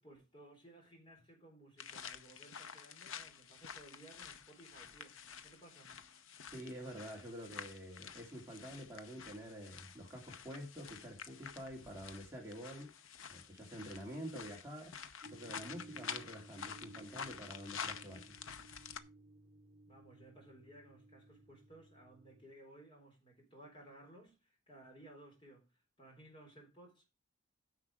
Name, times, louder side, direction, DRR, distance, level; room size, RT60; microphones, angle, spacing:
voice 1, 0.0-5.1 5.4-5.9 19.9-27.0, right 1 dB, 25° left, 3.9 m, -58 dB
sound 1, 1.8-19.0, left 7 dB, 85° left, 0.8 m, -49 dB
voice 2, 6.5-12.9 13.3-14.9 15.3-18.4, equal, 15° right, 2.3 m, -48 dB
sound 2, 15.2-22.4, right 2 dB, 30° right, 1.6 m, -58 dB
9.9 x 6.6 x 4.8 m
head